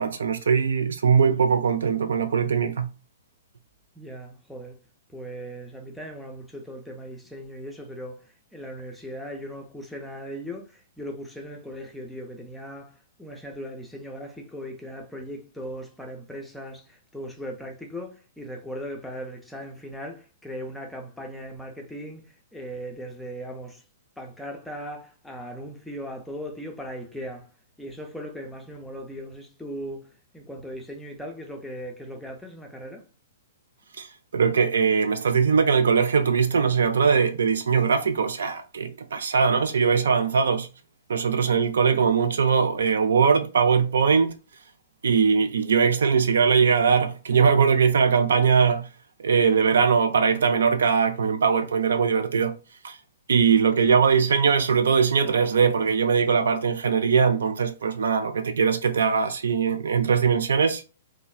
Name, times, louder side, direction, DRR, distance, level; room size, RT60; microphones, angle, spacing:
voice 1, 0.0-2.9 34.0-34.1 34.3-40.7 41.1-44.3 45.0-48.9 49.2-52.5 52.8-53.0 53.3-60.8, right 6 dB, 65° right, 0.3 m, -21 dB
voice 2, 4.0-4.8 5.1-23.8 24.2-27.5 27.8-33.1, equal, 5° left, 0.5 m, -38 dB
3.0 x 2.0 x 2.2 m
figure-of-eight pair, 110°, 0 cm